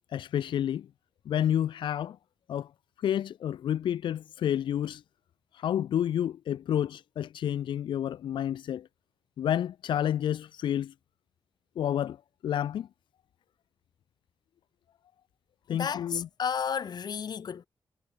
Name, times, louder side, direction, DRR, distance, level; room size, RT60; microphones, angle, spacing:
voice 1, 0.1-0.9 1.3-2.2 2.5-2.7 3.0-5.0 5.5-8.9 9.4-10.9 11.8-12.2 12.4-12.9 15.7-16.3, left 10 dB, 80° left, 0.5 m, -29 dB
voice 2, 15.7-17.7, left 7 dB, 60° left, 1.4 m, -32 dB
cardioid pair, 100°, 8 cm